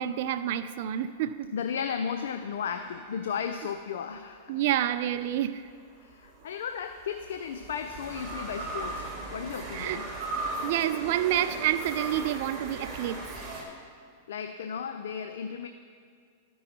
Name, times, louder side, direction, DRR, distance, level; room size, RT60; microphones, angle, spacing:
voice 1, 0.0-1.5 4.5-5.6 9.7-10.0 10.6-13.2, right 11 dB, 60° right, 10 dB, 0.4 m, -28 dB
voice 2, 1.5-4.6 6.0-10.1 14.3-15.7, left 7 dB, 75° left, 7 dB, 0.4 m, -35 dB
sound 1, 2.7-4.2 6.1-13.6, right 2 dB, 25° right, 2.2 m, -38 dB
13.0 x 5.5 x 4.2 m, 2.1 s
hypercardioid pair, 120°, 0 cm